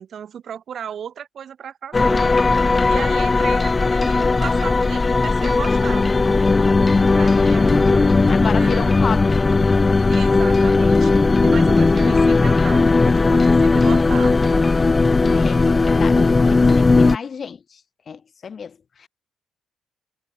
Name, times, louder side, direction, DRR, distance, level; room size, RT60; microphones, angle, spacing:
voice 1, 0.0-2.3 2.9-6.1 6.9-8.9 10.1-14.9, right 8 dB, 60° right, 5.5 m, -35 dB
sound 1, 1.9-17.2, left 3 dB, 25° left, 0.8 m, -16 dB
voice 2, 2.8-3.4 8.3-9.2 15.1-17.8 18.1-19.1, left 6 dB, 45° left, 4.2 m, -32 dB
cardioid pair, 90°, 0 cm